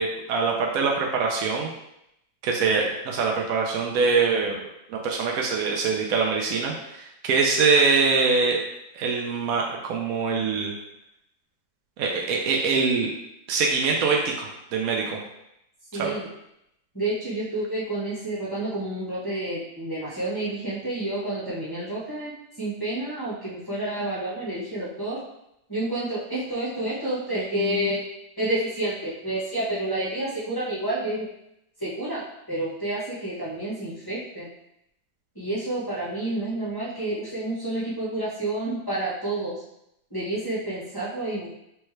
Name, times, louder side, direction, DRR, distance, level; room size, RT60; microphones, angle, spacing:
voice 1, 0.0-1.7 2.4-8.6 8.9-10.8 12.0-13.1 13.5-15.2 15.9-16.1, right 4 dB, 80° right, 0 dB, 0.8 m, -24 dB
voice 2, 15.9-16.3 16.9-25.2 25.7-28.0 28.4-31.3 31.8-34.5 35.3-39.6 40.1-41.5, right 1 dB, 15° left, -10 dB, 0.8 m, -29 dB
4.6 x 3.3 x 3.1 m, 0.82 s
omnidirectional pair, 2.2 m